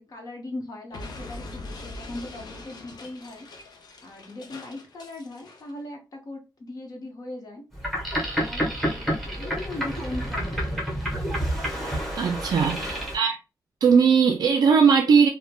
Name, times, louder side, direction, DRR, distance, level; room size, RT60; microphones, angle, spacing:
voice 1, 0.0-3.5 4.0-7.6 8.4-11.0 12.7-13.0, left 2 dB, 60° left, 0.9 m, -39 dB
Explosion, 0.9-5.7, left 2 dB, 80° left, 0.5 m, -42 dB
Boat Water vehicle, 7.7-13.2, equal, ahead, 0.9 m, -29 dB
voice 2, 12.2-13.4 13.8-15.3, right 6 dB, 75° right, 0.3 m, -19 dB
3.1 x 2.0 x 2.2 m
wide cardioid pair, 135°, 7 cm